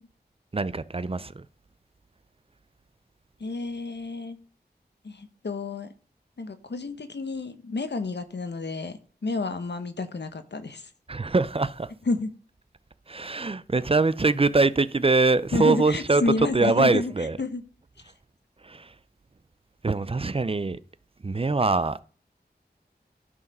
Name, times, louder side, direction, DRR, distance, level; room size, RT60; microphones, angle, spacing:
voice 1, 0.5-1.5 11.1-11.9 13.1-17.4 18.6-18.9 19.8-20.8 21.2-22.0, right 3 dB, 35° right, 0.4 m, -23 dB
voice 2, 3.4-4.4 5.0-5.9 6.4-10.9 12.1-12.3 15.5-17.1 17.4-17.6, left 3 dB, 85° left, 0.9 m, -30 dB
11.0 x 4.8 x 5.4 m
wide cardioid pair, 55°, 18 cm